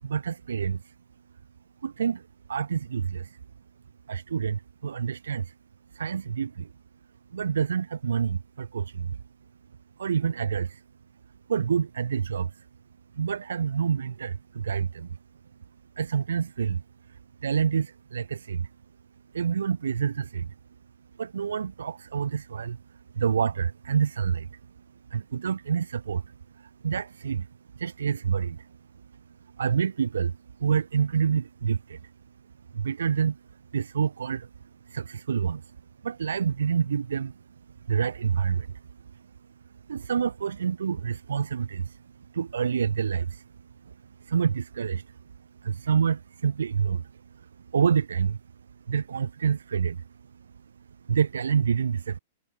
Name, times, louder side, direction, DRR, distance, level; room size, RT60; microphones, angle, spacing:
voice 1, 0.0-0.9 1.8-2.2 2.5-3.4 4.1-5.5 5.9-6.7 7.3-9.2 10.0-10.8 11.5-12.6 13.1-15.2 16.0-16.8 17.1-18.7 19.3-20.5 21.2-22.8 23.1-24.6 25.1-27.5 27.7-28.7 29.6-32.1 32.7-33.4 33.7-34.5 34.9-35.8 36.0-37.3 37.9-38.8 39.1-39.2 39.9-42.0 42.3-43.4 44.2-45.2 45.6-47.1 47.7-48.4 48.9-50.1 51.1-52.2, right 7 dB, 80° right, 0.5 m, -27 dB
hypercardioid pair, 105°, 0 cm